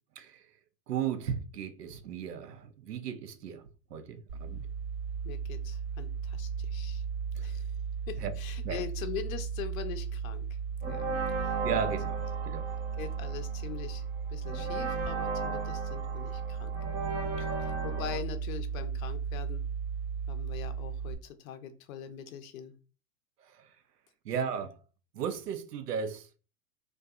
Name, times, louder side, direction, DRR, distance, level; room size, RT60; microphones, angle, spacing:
voice 1, 0.9-4.6 8.2-8.3 8.6-8.8 11.6-12.6 17.4-17.5 24.3-24.8 25.1-26.3, right 7 dB, 90° right, 0.6 m, -35 dB
sound 1, 4.3-21.1, right 6 dB, 55° right, 1.0 m, -36 dB
voice 2, 5.2-7.0 7.4-7.7 8.1-10.4 10.9-11.1 11.4-11.6 12.4-12.5 13.0-14.0 14.3-16.7 17.6-19.6 20.3-22.7 24.3-24.4, left 9 dB, 60° left, 0.6 m, -42 dB
sound 2, 10.8-18.2, right 4 dB, 20° right, 0.4 m, -36 dB
2.6 x 2.2 x 2.3 m
hypercardioid pair, 115°, 46 cm